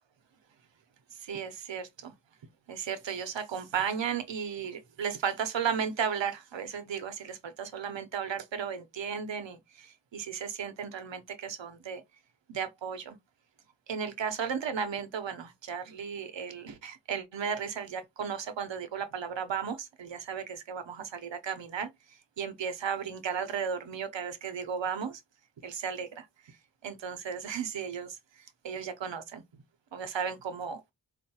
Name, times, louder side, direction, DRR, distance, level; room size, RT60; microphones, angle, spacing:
voice 1, 1.1-2.1 2.7-12.0 12.5-13.2 13.9-25.2 25.6-26.6 26.8-29.4 29.9-30.8, right 7 dB, 85° right, 0.8 m, -35 dB
4.5 x 2.4 x 2.8 m
wide cardioid pair, 90°, 44 cm